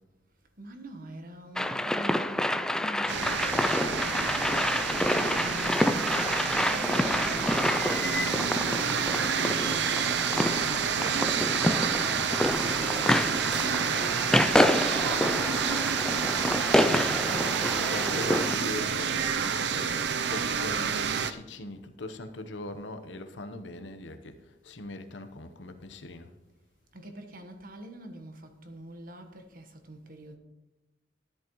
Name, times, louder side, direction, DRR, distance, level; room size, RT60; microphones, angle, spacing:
voice 1, 0.6-12.6 26.9-30.4, right 1 dB, 50° right, 1.3 m, -46 dB
sound 1, 1.6-18.6, left 1 dB, 5° left, 0.3 m, -28 dB
sound 2, 3.1-21.3, right 6 dB, 65° right, 0.6 m, -29 dB
voice 2, 17.7-24.4 24.6-26.3, left 2 dB, 80° left, 1.0 m, -40 dB
13.0 x 11.0 x 3.1 m
head